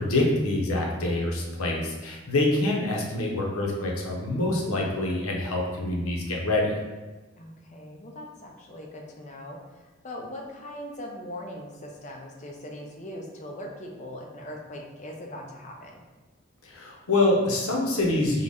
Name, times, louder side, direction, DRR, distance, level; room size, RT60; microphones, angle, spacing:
voice 1, 0.0-6.7 16.6-18.4, left 2 dB, 90° left, -1 dB, 0.7 m, -26 dB
voice 2, 7.4-9.6 10.0-16.0, left 1 dB, 35° left, 0 dB, 0.4 m, -40 dB
3.7 x 2.1 x 3.4 m, 1.2 s
head